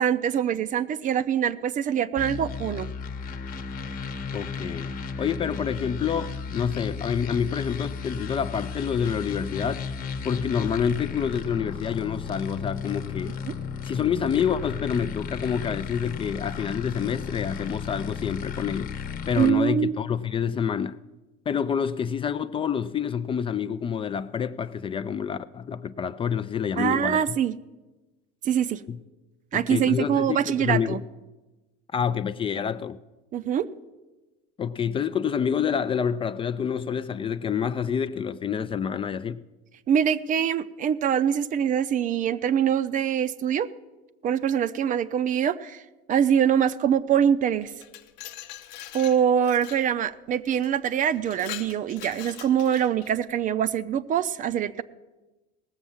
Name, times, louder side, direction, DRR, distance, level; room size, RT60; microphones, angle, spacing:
voice 1, 0.0-2.9 13.5-13.6 19.4-20.0 26.8-27.5 28.4-28.8 29.5-31.0 33.3-33.7 39.9-43.7 44.2-45.8 46.1-47.7 48.9-54.8, right 9 dB, 40° right, 0.6 m, -24 dB
sound 1, 2.2-19.5, left 6 dB, 40° left, 1.0 m, -34 dB
voice 2, 4.3-4.9 5.2-9.9 10.2-13.3 13.8-18.9 19.3-21.0 21.5-27.4 29.5-31.0 31.9-33.0 34.6-39.4, left 7 dB, 25° left, 0.4 m, -27 dB
Glass, 47.6-49.9 50.5-50.7 51.1-53.1, left 12 dB, 85° left, 0.8 m, -42 dB
18.0 x 7.1 x 7.2 m
supercardioid pair, 120°, 21 cm